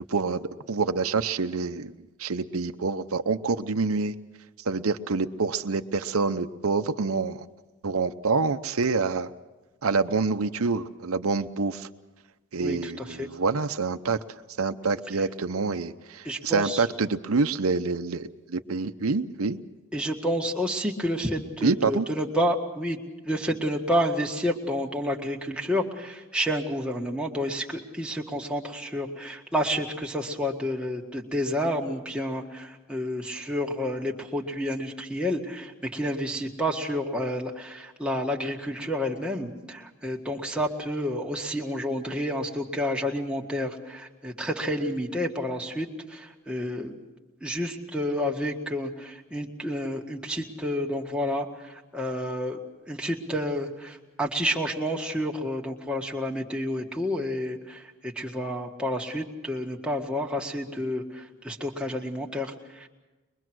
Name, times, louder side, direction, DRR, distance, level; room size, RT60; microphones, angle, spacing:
voice 1, 0.1-1.9 2.2-4.1 4.7-7.4 7.8-9.3 9.8-11.9 12.5-14.2 14.6-19.6 21.6-22.1, right 4 dB, 80° right, 8 dB, 0.8 m, -27 dB
voice 2, 12.6-13.3 16.2-16.8 19.9-23.0 23.2-47.0 47.4-52.6 52.9-62.9, equal, 5° right, -1 dB, 1.8 m, -30 dB
23.0 x 23.0 x 6.2 m, 1.2 s
head